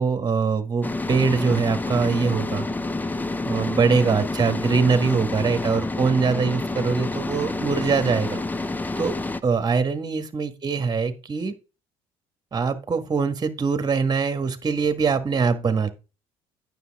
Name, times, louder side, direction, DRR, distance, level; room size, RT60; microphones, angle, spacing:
voice 1, 0.0-2.7 3.4-8.4 9.0-9.1 9.4-11.5 12.5-15.9, right 5 dB, 35° right, 9 dB, 1.7 m, -23 dB
sound 1, 0.8-9.4, left 2 dB, 15° left, 0.7 m, -28 dB
9.4 x 6.8 x 3.6 m, 0.31 s
supercardioid pair, 65°, 13 cm